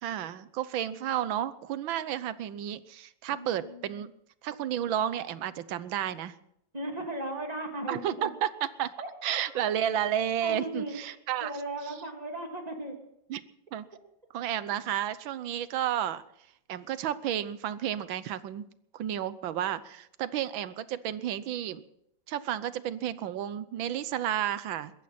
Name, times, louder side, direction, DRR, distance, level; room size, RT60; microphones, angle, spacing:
voice 1, 0.0-4.1 4.4-6.3 7.9-8.9 9.2-11.5 13.3-13.4 13.7-13.9 14.3-16.2 16.7-18.6 18.9-21.8 22.3-24.9, right 10 dB, 85° right, 15 dB, 1.6 m, -32 dB
voice 2, 3.3-4.1 6.7-8.3 9.0-9.4 10.4-13.0 14.6-14.7, right 1 dB, 20° right, 2 dB, 2.7 m, -37 dB
22.0 x 15.0 x 4.3 m, 0.75 s
omnidirectional pair, 2.1 m